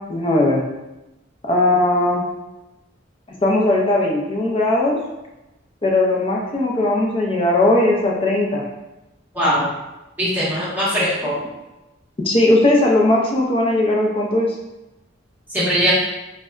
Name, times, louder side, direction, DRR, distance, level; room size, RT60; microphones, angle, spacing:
voice 1, 0.1-0.6 1.5-2.3 3.4-5.0 5.8-8.6 12.2-14.5, left 1 dB, 30° left, -2 dB, 0.5 m, -18 dB
voice 2, 9.3-9.7 10.2-11.4 15.5-15.9, equal, 10° right, -10 dB, 1.0 m, -20 dB
3.9 x 2.1 x 2.3 m, 1.0 s
head